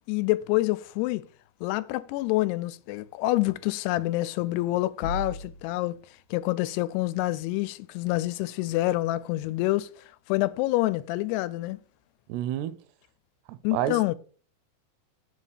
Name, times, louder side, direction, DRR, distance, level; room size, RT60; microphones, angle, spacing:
voice 1, 0.1-1.2 1.6-6.0 6.3-9.9 10.3-11.8 13.6-14.2, left 18 dB, 85° left, 2.6 m, -27 dB
sound 1, 5.0-6.0, left 1 dB, 70° left, 2.4 m, -36 dB
voice 2, 12.3-12.8 13.5-14.2, right 12 dB, 85° right, 2.6 m, -30 dB
7.5 x 4.1 x 6.5 m
omnidirectional pair, 4.7 m